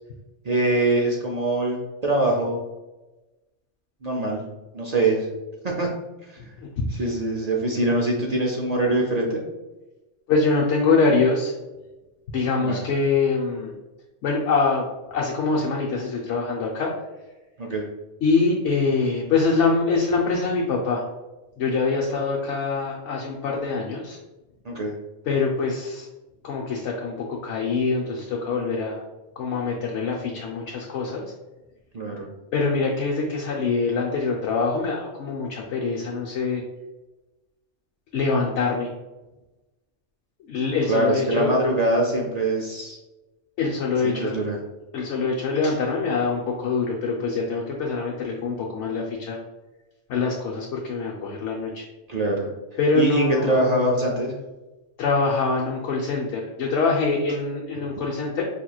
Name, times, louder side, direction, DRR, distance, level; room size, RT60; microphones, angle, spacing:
voice 1, 0.4-1.8 2.0-2.6 4.0-4.4 4.7-5.3 5.6-5.9 7.0-9.4 12.6-12.8 17.6-17.8 24.6-24.9 31.9-32.3 40.9-43.0 44.0-44.6 52.1-52.5 52.9-54.3, right 1 dB, 55° right, -1 dB, 0.4 m, -23 dB
voice 2, 6.6-7.0 10.3-11.5 12.3-13.7 14.2-14.8 15.1-16.9 18.2-21.0 21.6-24.2 25.3-26.1 26.4-29.0 29.4-31.2 32.5-36.6 38.1-38.9 40.5-41.5 43.6-44.4 44.9-49.4 50.1-51.8 52.8-53.9 55.0-58.4, left 4 dB, 75° left, -2 dB, 0.9 m, -24 dB
5.0 x 2.9 x 2.3 m, 1.1 s
omnidirectional pair, 1.2 m